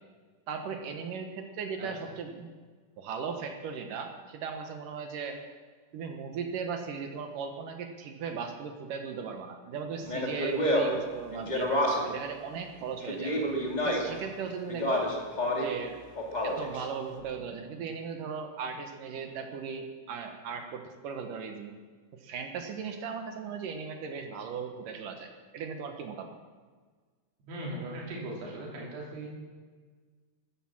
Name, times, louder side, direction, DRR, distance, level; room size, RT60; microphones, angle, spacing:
voice 1, 0.5-2.5 3.0-5.4 5.9-13.3 13.8-15.1 15.6-16.0 16.4-21.7 22.1-26.4, right 6 dB, 65° right, 5 dB, 2.5 m, -37 dB
Speech, 10.0-12.2 13.0-14.2 14.7-15.8 16.1-16.8, equal, 20° left, 1.2 m, -29 dB
voice 2, 27.5-29.3, right 1 dB, 85° right, -3 dB, 5.3 m, -38 dB
13.5 x 13.0 x 7.4 m, 1.5 s
omnidirectional pair, 4.6 m